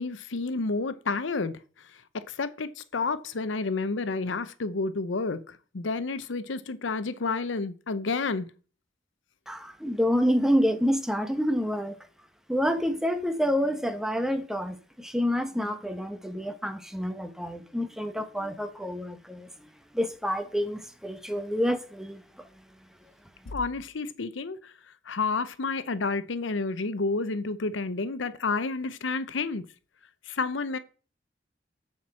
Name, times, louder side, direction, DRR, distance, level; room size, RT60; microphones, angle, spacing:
voice 1, 0.0-1.6 2.3-5.4 5.7-8.5 23.5-24.6 25.1-29.6 30.3-30.8, left 3 dB, 75° left, 0.7 m, -30 dB
voice 2, 9.5-12.0 12.5-19.5 19.9-22.5, equal, 5° right, 1.0 m, -28 dB
7.3 x 6.0 x 7.4 m
head